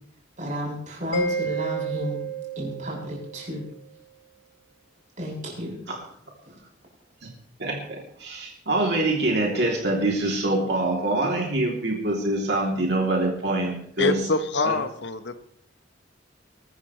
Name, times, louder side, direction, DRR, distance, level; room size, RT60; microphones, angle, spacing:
voice 1, 0.4-2.2 2.6-3.6 5.2-5.8 6.5-6.6, equal, 40° right, -3 dB, 7.8 m, -32 dB
Mallet percussion, 1.1-3.7, right 3 dB, 85° left, 3.2 m, -30 dB
voice 2, 7.6-14.2 14.6-14.8, right 2 dB, 60° right, -1 dB, 3.1 m, -25 dB
voice 3, 14.0-15.4, left 3 dB, 65° left, 10 dB, 1.1 m, -25 dB
22.5 x 13.5 x 3.3 m, 0.66 s
head